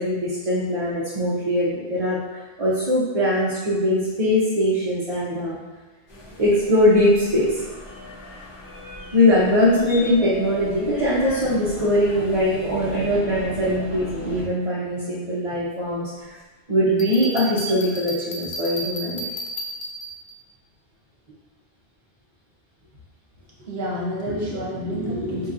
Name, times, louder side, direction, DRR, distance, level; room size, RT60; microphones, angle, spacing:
voice 1, 0.0-5.6 6.4-7.6 9.1-16.4 16.7-19.3, left 1 dB, 40° right, -9 dB, 0.6 m, -21 dB
sound 1, 6.1-14.4, left 1 dB, 35° left, 1.0 m, -37 dB
Bell, 17.0-20.3, right 1 dB, 50° left, 0.3 m, -32 dB
voice 2, 23.6-25.5, equal, 70° right, -4 dB, 1.0 m, -28 dB
4.5 x 2.8 x 2.5 m, 1.3 s
omnidirectional pair, 1.0 m